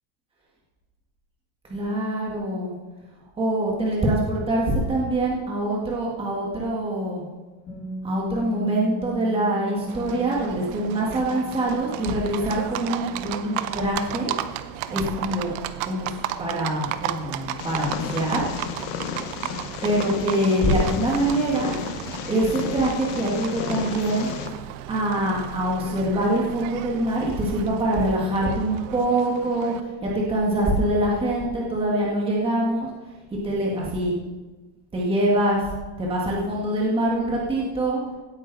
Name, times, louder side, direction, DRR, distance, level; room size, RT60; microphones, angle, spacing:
voice 1, 1.7-2.7 3.4-7.2 8.0-14.3 14.9-15.5 15.8-18.5 19.8-21.7 22.2-24.3 24.9-32.9 33.4-34.1 34.9-35.7 36.0-38.0, right 1 dB, 10° right, -3 dB, 1.8 m, -24 dB
Bass guitar, 7.7-13.9, equal, 25° left, 4.7 m, -37 dB
Livestock farm animals working animals, 9.9-29.8, right 12 dB, 65° right, 0.8 m, -34 dB
Purr, 17.6-24.5, left 7 dB, 60° left, 1.4 m, -33 dB
16.5 x 9.2 x 4.1 m, 1.2 s
cardioid pair, 170°, 45 cm